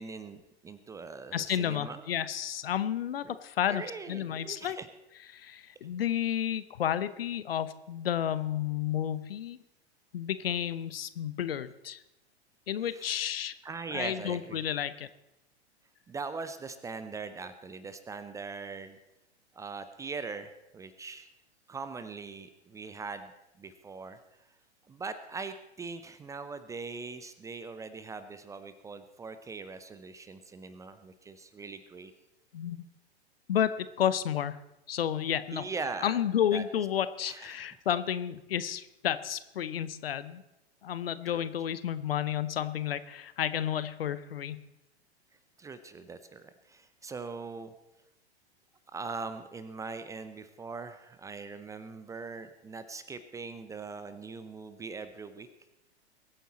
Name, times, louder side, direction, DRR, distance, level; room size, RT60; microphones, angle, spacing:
voice 1, 0.0-2.0 3.2-3.3 3.7-4.9 12.9-13.3 13.6-14.6 16.1-19.0 19.5-21.3 21.7-23.3 23.6-24.2 24.9-32.1 35.5-36.2 36.5-36.6 37.3-37.7 41.3-41.5 45.6-47.7 48.9-55.5, right 4 dB, 10° right, 11 dB, 0.5 m, -41 dB
voice 2, 1.3-3.8 4.1-4.8 5.3-9.6 10.1-12.0 12.7-13.5 13.9-15.1 32.5-32.8 33.5-34.6 34.9-35.6 36.0-40.4 40.8-44.6, left 10 dB, 60° left, 14 dB, 0.9 m, -31 dB
22.0 x 9.2 x 4.2 m, 0.93 s
figure-of-eight pair, 100°, 33 cm